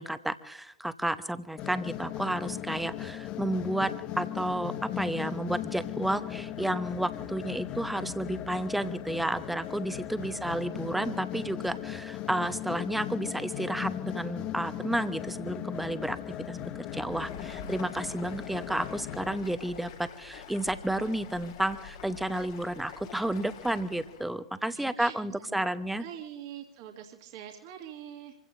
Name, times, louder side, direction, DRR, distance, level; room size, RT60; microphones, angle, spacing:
voice 1, 0.0-16.2 16.5-16.7 16.9-26.0, right 1 dB, 5° right, 12 dB, 1.0 m, -31 dB
sound 1, 1.6-19.4, left 11 dB, 40° left, 0.9 m, -38 dB
Stream, 16.8-24.3, left 6 dB, 60° left, 2.3 m, -47 dB
voice 2, 24.7-25.7 26.0-28.3, right 10 dB, 50° right, 1 dB, 2.3 m, -44 dB
27.0 x 16.5 x 2.7 m, 0.83 s
figure-of-eight pair, 85°, 3 cm